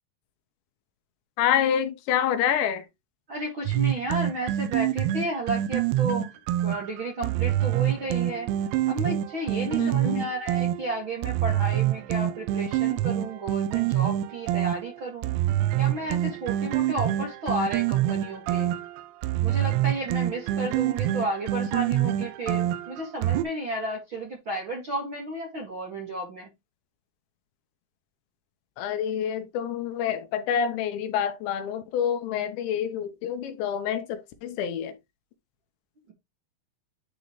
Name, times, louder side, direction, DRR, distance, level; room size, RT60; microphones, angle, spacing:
voice 1, 1.4-2.9 9.8-10.3 28.8-35.0, left 9 dB, 80° left, 3.1 m, -27 dB
voice 2, 3.3-6.3 6.6-8.5 8.9-15.3 15.8-18.7 19.4-26.5, right 1 dB, 45° right, 1.7 m, -32 dB
sound 1, 3.7-23.4, right 13 dB, 85° right, 2.9 m, -26 dB
10.5 x 3.9 x 3.1 m
omnidirectional pair, 5.3 m